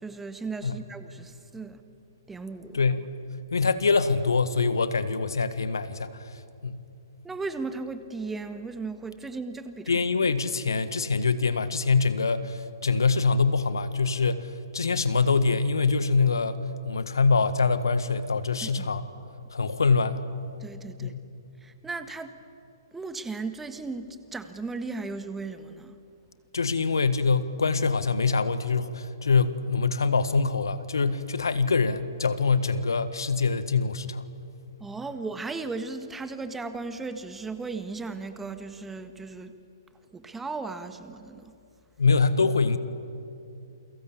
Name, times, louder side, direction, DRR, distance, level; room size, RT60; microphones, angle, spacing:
voice 1, 0.0-1.8 2.3-2.8 7.2-9.9 18.6-18.9 20.6-21.1 21.6-22.3 22.9-25.9 34.8-39.5 40.1-41.5, right 3 dB, 10° right, 9 dB, 1.6 m, -36 dB
voice 2, 2.7-3.1 3.5-6.3 6.6-6.8 9.9-16.6 16.8-19.0 19.5-20.2 21.0-21.2 26.5-34.3 42.0-42.8, left 4 dB, 70° left, 12 dB, 1.5 m, -24 dB
29.0 x 23.5 x 8.5 m, 2.6 s
figure-of-eight pair, 120°, 2 cm